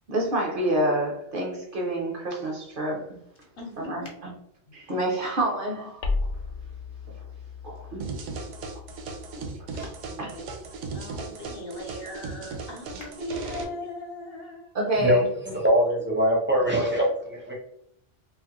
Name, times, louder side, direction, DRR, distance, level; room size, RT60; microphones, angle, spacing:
voice 1, 0.1-3.2 3.8-4.3 4.7-6.0 7.1-7.2 7.6-8.1 8.7-8.8 9.4-9.5 10.2-10.5 14.7-15.3, right 1 dB, 55° right, 0.7 m, -28 dB
voice 2, 3.6-4.1 10.0-10.5 10.9-14.7, left 2 dB, 55° left, 1.0 m, -39 dB
sound 1, 6.0-10.9, left 3 dB, 85° left, 0.9 m, -35 dB
sound 2, 8.0-13.6, right 4 dB, 75° right, 0.9 m, -37 dB
voice 3, 14.9-17.5, equal, 15° right, 0.5 m, -23 dB
2.7 x 2.4 x 2.9 m
omnidirectional pair, 1.3 m